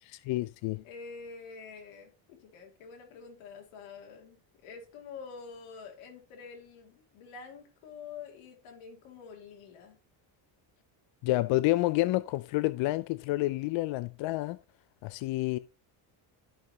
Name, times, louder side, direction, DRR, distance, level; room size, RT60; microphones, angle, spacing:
voice 1, 0.1-0.8 11.2-14.6 15.0-15.6, left 18 dB, 70° left, 0.6 m, -29 dB
voice 2, 0.8-10.0, left 5 dB, 85° left, 2.6 m, -47 dB
13.0 x 5.5 x 2.9 m
cardioid pair, 120°, 48 cm